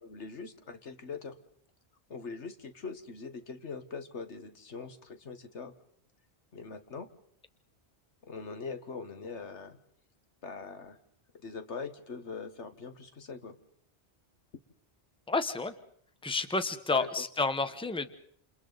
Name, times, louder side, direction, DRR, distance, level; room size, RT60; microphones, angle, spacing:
voice 1, 0.0-1.4 2.1-5.7 6.5-7.1 8.3-9.8 10.4-11.0 11.4-13.6 16.9-17.1, left 4 dB, 80° left, 9 dB, 1.7 m, -42 dB
voice 2, 15.3-15.7 16.2-18.1, left 3 dB, 5° left, 10 dB, 1.0 m, -30 dB
29.0 x 28.5 x 4.0 m, 0.63 s
omnidirectional pair, 1.2 m